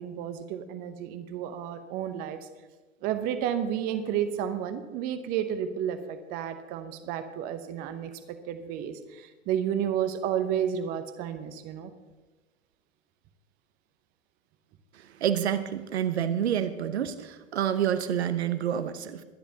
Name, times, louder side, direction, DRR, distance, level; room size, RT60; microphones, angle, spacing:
voice 1, 0.0-2.4 3.0-11.9, right 9 dB, 25° right, 10 dB, 0.7 m, -31 dB
voice 2, 15.2-19.2, right 9 dB, 55° right, 11 dB, 0.9 m, -28 dB
22.0 x 10.0 x 2.8 m, 1.2 s
figure-of-eight pair, 105°, 39 cm